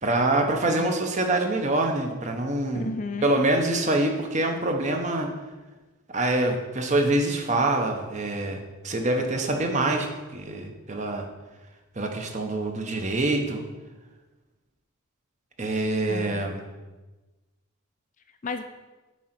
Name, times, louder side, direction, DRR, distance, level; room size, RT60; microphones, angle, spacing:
voice 1, 0.0-2.9 3.2-5.3 6.1-8.6 8.8-11.3 12.0-13.6 15.6-16.6, right 2 dB, 35° right, 4 dB, 0.8 m, -25 dB
voice 2, 0.6-1.0 2.7-3.4 16.1-16.4 18.4-18.6, left 3 dB, 35° left, 8 dB, 0.4 m, -33 dB
8.5 x 3.8 x 5.9 m, 1.2 s
head